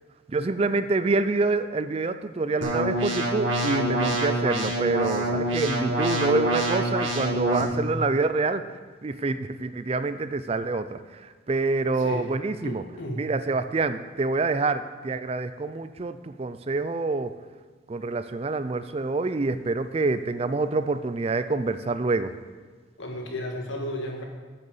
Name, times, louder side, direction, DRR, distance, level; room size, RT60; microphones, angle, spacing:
voice 1, 0.3-8.6 9.0-12.8 13.2-17.3 17.9-22.3, right 3 dB, 30° right, 12 dB, 0.4 m, -26 dB
sound 1, 2.6-7.6, right 1 dB, 85° right, 1.8 m, -26 dB
voice 2, 12.0-12.3 12.6-13.3 23.0-24.2, equal, 80° left, 1 dB, 1.8 m, -33 dB
10.5 x 6.7 x 5.4 m, 1.4 s
head